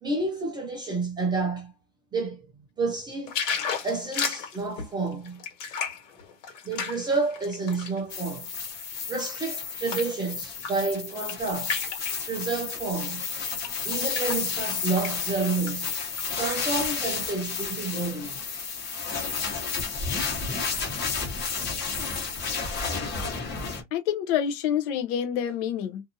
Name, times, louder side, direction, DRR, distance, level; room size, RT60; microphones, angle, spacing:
voice 1, 0.0-1.7 2.1-3.4 3.8-5.4 6.6-8.5 9.1-11.8 12.3-13.2 13.8-15.9 16.4-18.4, right 3 dB, 15° right, 0.3 m, -30 dB
sound 1, 3.3-8.0 8.5-10.2 10.5-10.9 11.1-12.2 13.0-13.2 13.6-14.7 15.0-15.1 15.4-16.2 16.7-16.8, left 6 dB, 90° left, 1.5 m, -33 dB
sound 2, 8.1-23.8, left 5 dB, 30° left, 1.2 m, -31 dB
voice 2, 23.9-26.0, left 9 dB, 55° left, 0.6 m, -27 dB
2.6 x 2.5 x 2.6 m
supercardioid pair, 165°, 36 cm